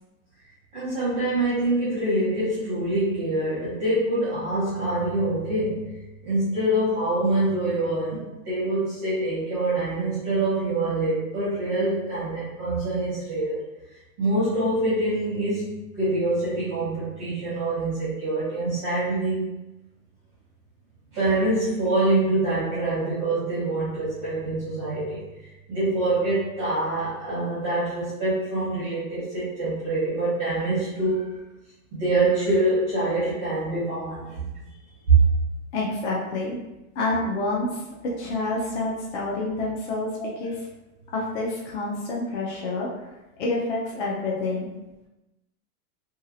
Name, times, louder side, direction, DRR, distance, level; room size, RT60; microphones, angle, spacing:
voice 1, 0.7-5.9 6.2-13.6 14.2-19.4 21.1-25.3 25.7-31.4 31.9-34.5 35.1-35.2, right 2 dB, 15° right, -12 dB, 0.5 m, -25 dB
voice 2, 35.7-36.6 37.0-37.8 38.2-40.1 40.4-40.6 41.1-42.9 43.4-44.7, left 2 dB, 50° left, -3 dB, 0.6 m, -28 dB
2.8 x 2.4 x 2.6 m, 1.0 s
supercardioid pair, 180°, 44 cm